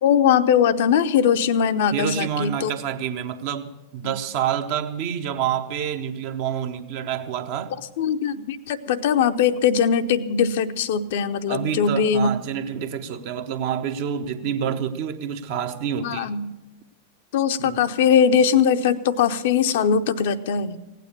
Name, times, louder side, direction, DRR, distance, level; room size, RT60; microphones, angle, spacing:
voice 1, 0.0-2.7 4.0-4.2 8.0-12.3 16.0-16.5 17.3-20.8, left 7 dB, 55° left, 0.6 m, -20 dB
voice 2, 1.9-7.7 11.5-16.3 17.6-17.8, right 8 dB, 50° right, 0.9 m, -28 dB
16.5 x 9.2 x 7.1 m
figure-of-eight pair, 90°, 0 cm